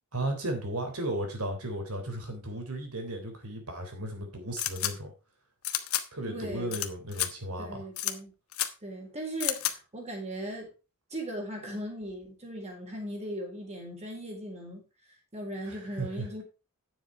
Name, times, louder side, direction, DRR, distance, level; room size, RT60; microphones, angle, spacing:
voice 1, 0.1-5.1 6.1-7.8 15.6-16.4, right 1 dB, 80° right, 3.4 m, -35 dB
sound 1, 4.6-4.9 5.6-6.0 6.7-6.9 7.1-7.3 8.0-8.1 8.5-8.7 9.4-9.7, left 13 dB, 70° left, 1.1 m, -30 dB
voice 2, 6.2-6.8 7.6-8.3 8.8-10.7 11.1-14.8 15.3-16.4, right 1 dB, 30° right, 4.2 m, -38 dB
10.0 x 7.3 x 4.5 m
head